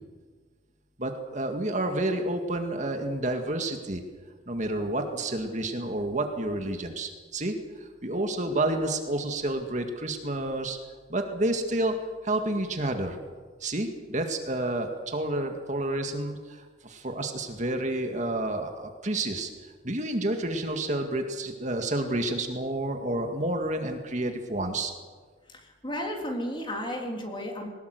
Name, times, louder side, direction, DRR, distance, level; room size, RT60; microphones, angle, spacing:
voice 1, 1.0-4.0 4.5-10.8 11.1-12.0 12.2-13.2 13.6-16.6 16.8-19.5 19.8-24.9, right 1 dB, 40° right, 4 dB, 2.0 m, -29 dB
voice 2, 25.5-27.7, equal, 25° left, 2 dB, 3.6 m, -33 dB
21.5 x 19.5 x 8.0 m, 1.5 s
head